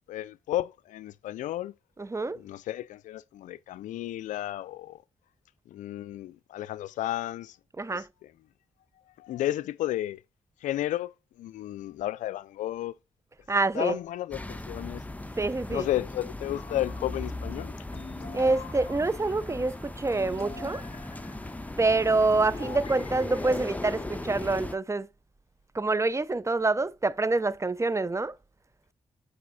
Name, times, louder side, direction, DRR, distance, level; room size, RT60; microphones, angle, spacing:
voice 1, 0.1-1.7 2.4-5.0 5.7-7.6 7.9-8.0 9.2-10.2 10.6-11.1 11.4-13.0 13.7-15.0 15.7-17.7, left 14 dB, 85° left, 0.4 m, -32 dB
voice 2, 2.0-2.4 7.8-8.1 13.5-14.0 15.4-15.9 18.3-20.8 21.8-25.1 25.7-28.3, right 3 dB, 25° right, 0.6 m, -26 dB
sound 1, 14.3-24.7, left 2 dB, 10° left, 1.1 m, -38 dB
sound 2, 16.5-24.3, left 5 dB, 50° left, 1.9 m, -47 dB
8.5 x 4.9 x 4.0 m
supercardioid pair, 50°, 13 cm